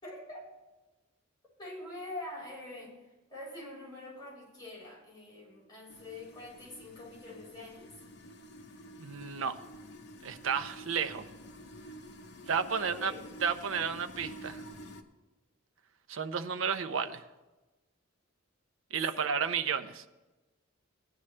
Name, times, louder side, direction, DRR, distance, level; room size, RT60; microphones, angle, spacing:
voice 1, 0.0-0.5 1.6-2.9 3.3-7.9 12.8-13.3 19.1-19.3, left 2 dB, 20° left, -5 dB, 5.0 m, -45 dB
sound 1, 5.9-15.0, equal, 55° left, 0.8 m, -49 dB
voice 2, 9.0-9.6 10.2-11.2 12.5-13.1 13.4-14.6 16.1-17.2 18.9-20.1, right 6 dB, 75° right, 10 dB, 0.7 m, -32 dB
17.0 x 10.0 x 3.3 m, 1.1 s
head